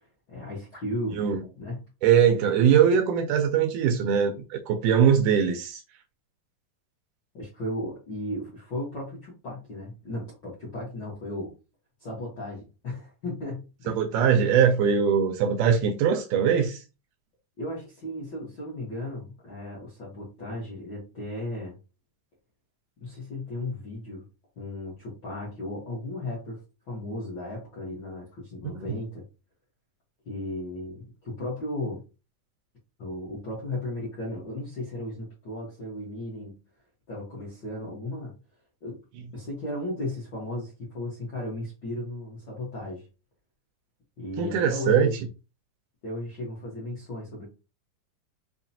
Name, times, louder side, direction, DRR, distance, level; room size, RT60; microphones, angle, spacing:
voice 1, 0.3-1.3 1.5-1.8 7.3-11.5 12.0-14.0 17.6-21.8 23.0-24.3 24.6-26.6 26.9-29.2 30.2-32.0 33.0-36.5 37.1-38.3 38.8-39.0 39.3-43.1 44.2-45.1 46.0-47.4, left 1 dB, 60° left, 1.1 m, -35 dB
voice 2, 2.0-5.8 13.9-16.8 28.6-28.8 44.4-45.1, right 7 dB, 80° right, 1.9 m, -21 dB
5.7 x 2.2 x 2.7 m
omnidirectional pair, 3.8 m